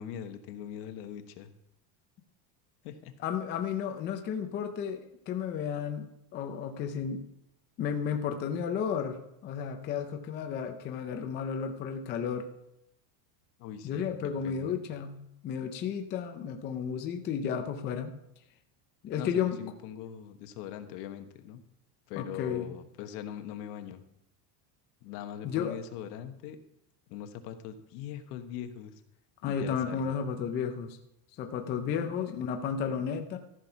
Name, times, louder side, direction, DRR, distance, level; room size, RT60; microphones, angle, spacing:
voice 1, 0.0-1.5 2.8-3.1 13.6-14.8 19.1-21.6 22.1-24.0 25.0-26.6 27.1-28.9 29.4-30.2 31.9-32.1, left 10 dB, 70° left, 8 dB, 1.3 m, -41 dB
voice 2, 3.2-7.2 7.8-12.5 13.8-18.1 19.0-19.6 22.2-22.8 25.4-25.8 29.4-31.0 31.4-33.4, left 7 dB, 20° left, 5 dB, 0.5 m, -33 dB
14.0 x 6.0 x 5.6 m, 0.80 s
cardioid pair, 175°, 50 cm